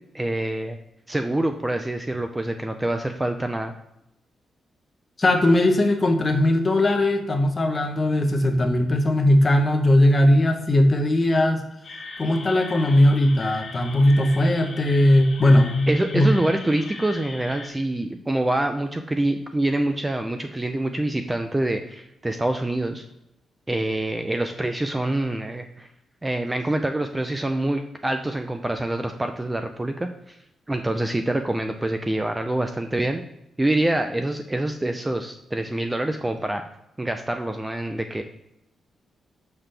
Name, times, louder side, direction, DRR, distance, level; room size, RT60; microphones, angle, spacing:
voice 1, 0.1-0.8 1.1-3.7 15.9-23.0 23.7-25.9 26.2-30.4 30.7-33.2 33.6-36.6 37.0-38.2, right 1 dB, 10° right, 6 dB, 0.4 m, -26 dB
voice 2, 5.2-11.6 12.2-16.3, left 1 dB, 25° left, 4 dB, 0.9 m, -19 dB
sound 1, 11.8-17.7, left 3 dB, 40° left, 1.3 m, -39 dB
7.2 x 5.8 x 3.3 m, 0.83 s
wide cardioid pair, 155°, 0 cm